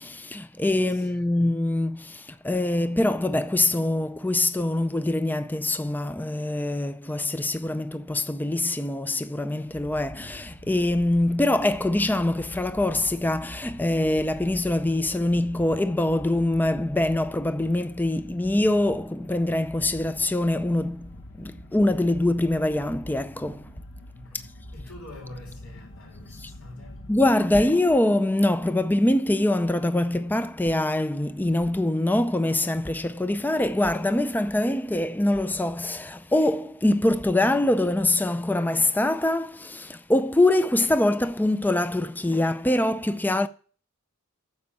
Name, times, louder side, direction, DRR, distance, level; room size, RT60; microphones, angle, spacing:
voice 1, 0.0-23.7 26.4-26.5 27.1-43.5, left 1 dB, 10° left, 0.5 m, -24 dB
voice 2, 0.8-1.3 24.1-27.2, left 1 dB, 85° left, 4.6 m, -46 dB
sound 1, 9.7-27.3, left 1 dB, 65° left, 1.3 m, -45 dB
9.7 x 7.0 x 8.5 m
head